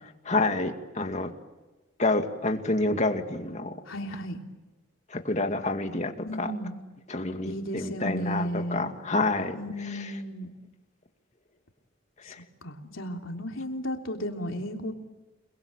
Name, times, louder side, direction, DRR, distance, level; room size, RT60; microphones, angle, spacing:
voice 1, 0.2-1.3 2.0-3.8 5.1-6.5 7.1-10.2 12.3-12.4, left 2 dB, 35° left, 6 dB, 2.3 m, -28 dB
voice 2, 3.9-4.4 6.3-6.8 7.5-8.9 9.5-10.5 12.6-14.9, equal, 85° left, 3 dB, 3.4 m, -34 dB
30.0 x 22.0 x 9.0 m, 1.1 s
head